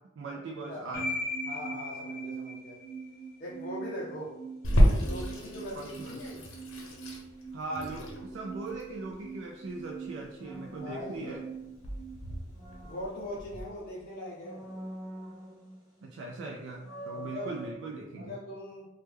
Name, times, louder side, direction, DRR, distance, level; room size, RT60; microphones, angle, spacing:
voice 1, 0.2-1.0 5.8-6.2 7.5-11.4 16.0-18.4, right 3 dB, 65° right, 0 dB, 0.3 m, -39 dB
voice 2, 0.7-1.0 1.5-2.8 3.4-4.3 5.0-6.4 10.8-11.4 12.8-14.7 17.1-17.5 18.2-18.9, left 1 dB, 50° left, -5 dB, 0.6 m, -41 dB
sound 1, 0.8-1.1 10.4-11.8 12.3-13.9 14.4-16.0 16.3-16.4 16.8-17.7, right 1 dB, 20° right, 1.1 m, -45 dB
sound 2, 0.9-13.0, right 2 dB, 10° left, 0.9 m, -41 dB
Water tap faucet / Sink (filling or washing), 4.6-13.6, equal, 85° left, 0.7 m, -31 dB
3.1 x 2.2 x 3.3 m, 0.98 s
head